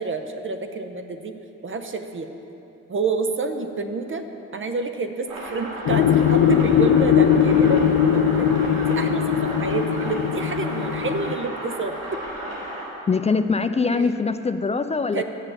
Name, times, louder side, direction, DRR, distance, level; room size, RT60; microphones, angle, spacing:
voice 1, 0.0-1.4 1.6-2.3 2.9-4.2 4.5-8.5 8.9-12.2 13.9-14.1 15.1-15.2, right 4 dB, 35° right, 7 dB, 0.7 m, -28 dB
sound 1, 5.3-12.9, right 1 dB, 80° right, 1.9 m, -34 dB
sound 2, 5.9-11.3, left 8 dB, 70° left, 0.5 m, -19 dB
voice 2, 13.1-15.2, left 4 dB, 20° left, 11 dB, 0.3 m, -22 dB
7.2 x 6.6 x 7.2 m, 2.9 s
supercardioid pair, 50°, 34 cm